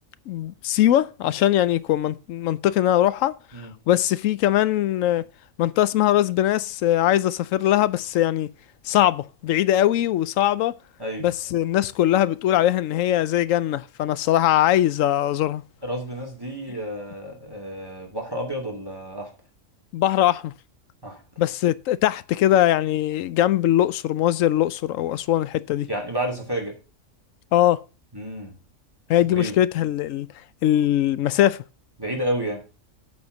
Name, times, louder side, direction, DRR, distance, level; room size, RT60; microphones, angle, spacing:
voice 1, 0.3-3.4 3.9-5.2 5.6-8.5 8.9-10.7 11.2-15.6 19.9-20.5 21.4-25.9 27.5-27.8 29.1-30.3 30.6-31.6, left 12 dB, 75° left, 0.9 m, -21 dB
voice 2, 15.8-19.3 21.0-21.2 25.9-26.7 28.1-28.6 29.3-29.6 32.0-32.6, right 1 dB, 15° right, 2.6 m, -30 dB
8.5 x 4.4 x 6.4 m
omnidirectional pair, 1.4 m